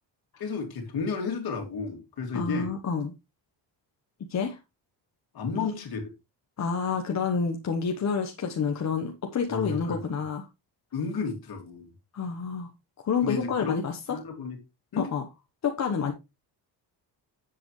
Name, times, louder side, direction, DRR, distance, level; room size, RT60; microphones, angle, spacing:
voice 1, 0.4-2.7 5.3-6.1 9.5-10.0 10.9-11.9 13.2-13.8 14.1-14.6 14.9-15.1, left 4 dB, 55° left, 2.7 m, -32 dB
voice 2, 2.3-3.1 4.3-4.6 5.5-5.7 6.6-10.5 12.1-12.7 13.0-14.2 15.0-15.2 15.6-16.1, left 6 dB, 40° left, 1.1 m, -28 dB
10.0 x 7.9 x 3.1 m
cardioid pair, 175°, 43 cm